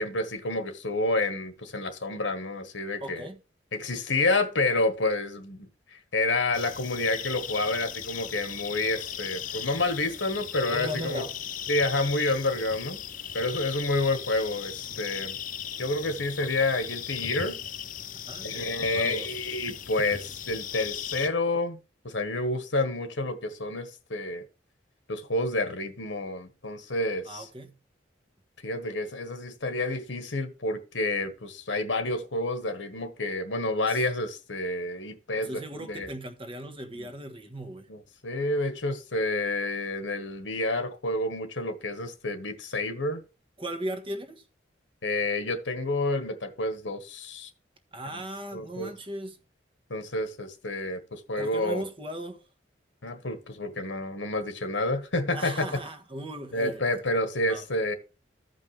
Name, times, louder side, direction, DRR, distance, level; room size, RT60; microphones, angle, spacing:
voice 1, 0.0-3.2 3.7-11.2 11.7-13.0 13.3-15.4 15.8-17.6 18.4-21.8 22.0-24.4 25.1-27.5 28.6-36.1 37.0-37.1 37.9-43.2 45.0-47.5 48.1-48.2 48.5-48.9 49.9-51.8 53.0-55.6 56.5-57.9, left 2 dB, 85° left, 1.4 m, -29 dB
voice 2, 3.0-3.4 10.7-11.4 17.4-17.5 18.3-18.6 18.9-19.3 27.2-27.8 33.9-34.0 35.4-37.9 43.6-44.4 47.9-49.4 51.4-52.4 55.3-56.8 57.5-57.6, right 1 dB, 30° right, 1.3 m, -37 dB
sound 1, 6.5-21.3, left 9 dB, 45° left, 0.6 m, -38 dB
14.5 x 5.4 x 3.3 m
head